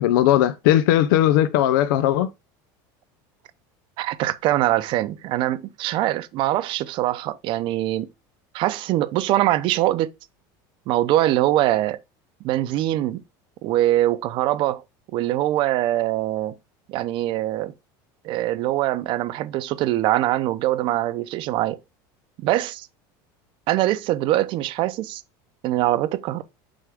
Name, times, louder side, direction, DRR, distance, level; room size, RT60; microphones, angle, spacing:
voice 1, 0.0-2.3, left 12 dB, 80° left, 0.5 m, -18 dB
voice 2, 4.0-8.1 8.5-10.1 10.9-12.0 12.4-13.2 13.6-14.8 15.1-16.5 16.9-17.7 18.2-21.8 22.4-22.9 23.7-25.2 25.6-26.4, right 14 dB, 50° right, 0.7 m, -23 dB
7.7 x 3.6 x 3.5 m
supercardioid pair, 140°, 11 cm